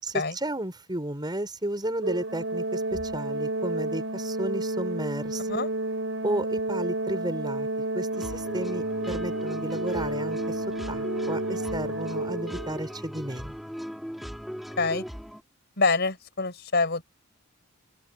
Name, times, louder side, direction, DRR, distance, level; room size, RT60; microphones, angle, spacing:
voice 1, 0.0-5.6 6.2-7.7 7.9-13.5, right 1 dB, 20° right, 5.4 m, -33 dB
Organ, 2.0-12.9, right 2 dB, 65° right, 7.2 m, -31 dB
sound 1, 8.1-15.4, equal, ahead, 5.7 m, -38 dB
voice 2, 15.8-17.0, left 3 dB, 55° left, 5.5 m, -25 dB
open air
head